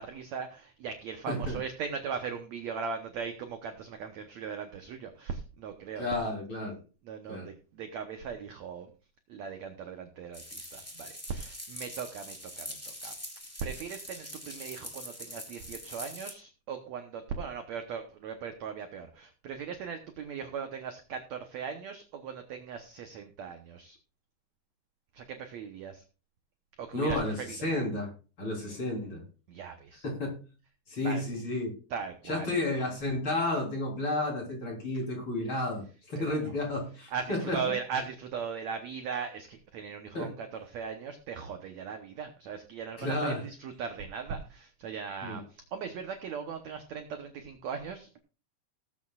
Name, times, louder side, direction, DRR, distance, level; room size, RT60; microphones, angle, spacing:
voice 1, 0.0-6.1 7.0-8.9 9.3-13.1 13.6-24.0 25.1-26.0 26.8-27.6 29.5-30.1 31.0-31.2 31.9-32.7 36.1-36.5 37.1-48.2, right 6 dB, 70° right, 6 dB, 1.7 m, -39 dB
voice 2, 1.3-1.6 6.0-6.7 7.3-7.5 26.9-27.4 27.6-28.1 28.4-29.2 30.0-30.4 30.9-31.7 32.3-37.6 40.1-40.3 43.0-43.4 45.2-45.4, left 2 dB, 35° left, 0 dB, 4.0 m, -31 dB
sound 1, 10.3-16.3, equal, 5° left, 1.5 m, -43 dB
19.0 x 8.2 x 2.4 m, 0.35 s
omnidirectional pair, 4.5 m